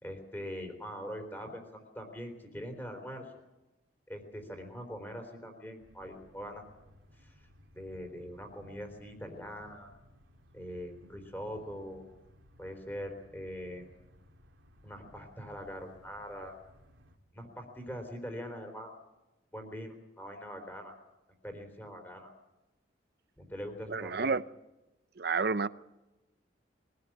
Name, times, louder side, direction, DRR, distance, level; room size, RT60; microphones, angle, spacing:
voice 1, 0.0-3.3 4.1-7.5 7.7-10.0 10.5-12.0 12.6-13.9 14.8-16.5 17.3-19.0 19.5-21.0 21.4-22.3 23.4-24.4, equal, 10° left, 4 dB, 3.8 m, -43 dB
sound 1, 5.8-17.2, left 1 dB, 80° right, 2.4 m, -60 dB
voice 2, 23.9-24.4 25.2-25.7, right 4 dB, 55° right, 16 dB, 0.6 m, -30 dB
23.0 x 16.0 x 7.4 m, 1.0 s
head